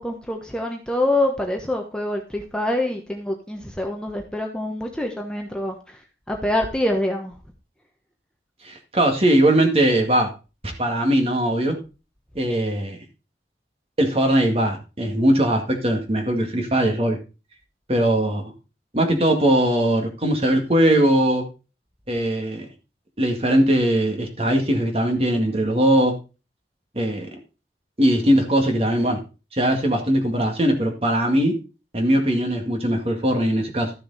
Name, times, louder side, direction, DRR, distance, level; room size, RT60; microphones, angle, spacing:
voice 1, 0.0-6.0 6.3-7.3, left 1 dB, 5° left, 2 dB, 1.0 m, -25 dB
voice 2, 8.6-10.3 10.8-11.8 12.4-13.0 14.0-17.2 17.9-18.4 18.9-21.4 22.1-22.7 23.2-26.1 27.0-27.3 28.0-29.2 29.5-31.5 31.9-33.9, right 1 dB, 35° right, 3 dB, 2.1 m, -20 dB
13.0 x 6.7 x 4.1 m, 0.31 s
head